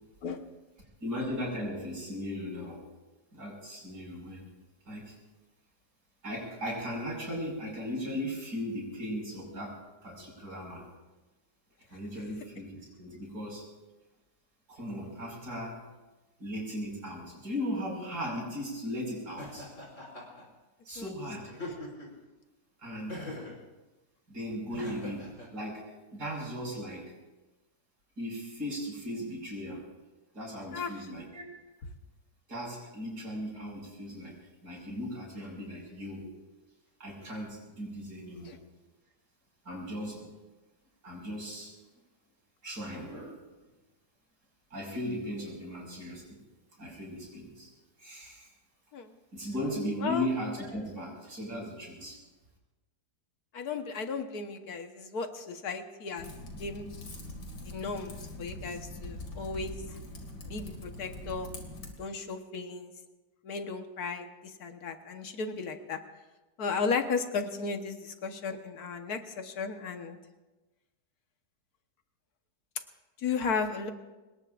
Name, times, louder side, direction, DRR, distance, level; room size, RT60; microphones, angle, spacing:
voice 1, 1.0-2.8 3.3-4.4 4.8-5.1 6.2-10.9 11.9-13.7 14.7-15.8 16.4-19.7 20.8-21.6 22.8-23.2 24.3-27.1 28.2-29.8 30.3-31.4 32.5-34.3 34.6-36.3 37.0-38.6 39.6-40.3 41.0-41.7 42.6-43.4 44.7-46.4 46.8-47.7 48.0-48.5 49.3-52.2, equal, 85° right, -2 dB, 6.0 m, -37 dB
Laughter, 19.4-20.4 21.5-22.2 23.1-23.6 24.7-25.5, left 2 dB, 45° left, 4.8 m, -42 dB
voice 2, 53.5-56.3 56.6-56.9 57.6-59.7 60.4-61.5 62.0-62.9 63.4-66.0 66.6-70.2 73.2-73.9, left 5 dB, 70° left, 6 dB, 1.7 m, -35 dB
Typing, 56.2-61.9, left 1 dB, 90° left, 2.8 m, -43 dB
25.5 x 20.5 x 2.5 m, 1.1 s
omnidirectional pair, 1.7 m